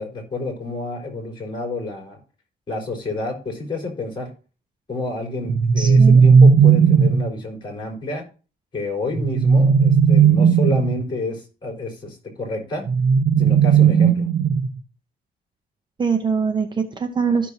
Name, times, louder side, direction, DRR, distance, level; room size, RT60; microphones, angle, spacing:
voice 1, 0.0-2.2 2.7-4.3 4.9-8.2 8.7-12.8 13.4-14.3, left 2 dB, 30° left, 0 dB, 3.9 m, -29 dB
sound 1, 5.5-7.3 9.1-11.0 12.9-14.8, right 6 dB, 60° right, 0.7 m, -15 dB
voice 2, 5.8-6.2 16.0-17.5, right 5 dB, 25° right, 6 dB, 0.7 m, -22 dB
13.5 x 6.2 x 2.7 m, 0.35 s
cardioid pair, 150°, 17 cm